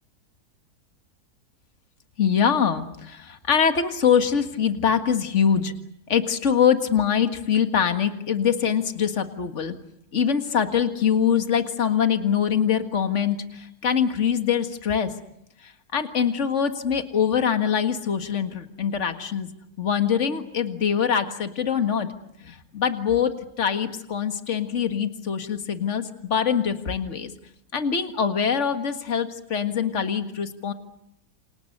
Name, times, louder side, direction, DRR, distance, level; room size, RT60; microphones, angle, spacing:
voice 1, 2.2-5.7 6.1-9.7 10.1-15.1 15.6-19.5 19.8-22.1 22.4-27.3 27.7-30.7, left 7 dB, 45° left, 8 dB, 2.1 m, -23 dB
29.0 x 26.0 x 6.7 m, 0.77 s
omnidirectional pair, 1.7 m